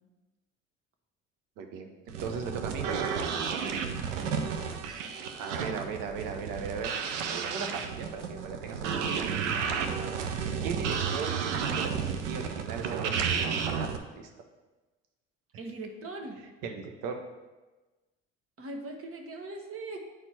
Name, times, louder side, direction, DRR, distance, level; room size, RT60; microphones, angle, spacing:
voice 1, 1.6-3.1 5.4-7.0 7.3-9.7 10.6-13.9 14.2-14.3 16.6-17.2, right 5 dB, 65° right, 5 dB, 1.1 m, -38 dB
sound 1, 2.1-14.0, right 6 dB, 85° right, 0.7 m, -32 dB
voice 2, 4.2-4.8 9.6-10.1 15.6-16.4 18.6-20.0, right 2 dB, 40° right, 3 dB, 1.4 m, -41 dB
8.9 x 4.5 x 4.3 m, 1.2 s
hypercardioid pair, 60°, 36 cm